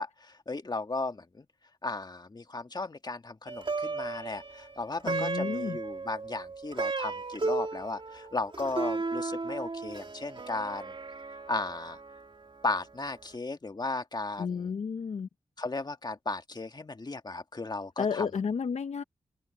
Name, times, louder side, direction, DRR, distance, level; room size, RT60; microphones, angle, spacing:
voice 1, 0.0-1.5 1.8-10.9 11.5-12.0 12.6-14.7 15.6-18.3, left 3 dB, 40° left, 2.0 m, -35 dB
Plucked string instrument, 3.5-12.9, right 3 dB, 50° right, 3.4 m, -35 dB
voice 2, 5.0-5.8 14.4-15.3 18.0-19.0, left 6 dB, 75° left, 1.1 m, -32 dB
cardioid pair, 45°, 11 cm